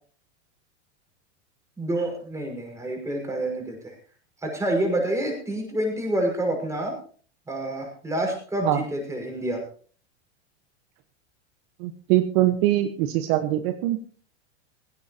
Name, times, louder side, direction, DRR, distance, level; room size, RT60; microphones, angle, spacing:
voice 1, 1.8-3.9 4.4-7.0 7.5-9.6, right 1 dB, 10° right, 1 dB, 5.5 m, -28 dB
voice 2, 11.8-14.0, right 14 dB, 55° right, 7 dB, 1.3 m, -22 dB
17.0 x 16.0 x 2.9 m, 0.43 s
supercardioid pair, 135°, 36 cm